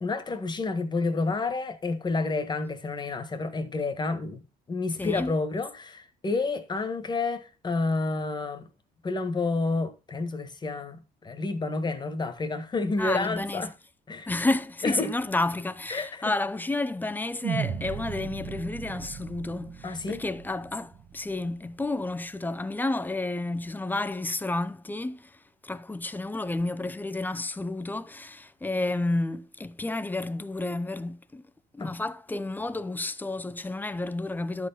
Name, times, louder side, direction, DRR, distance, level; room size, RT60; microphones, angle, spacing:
voice 1, 0.0-4.4 4.7-8.7 9.0-13.7 14.1-14.3 14.8-15.1 15.9-16.3 19.8-20.2 31.8-31.9, left 3 dB, 25° left, 1.6 m, -29 dB
voice 2, 5.0-5.3 13.0-13.7 14.3-31.4 31.7-34.7, left 2 dB, 10° left, 0.6 m, -31 dB
sound 1, 17.4-21.8, right 8 dB, 55° right, 1.6 m, -36 dB
12.0 x 4.6 x 5.6 m
cardioid pair, 110°, 17 cm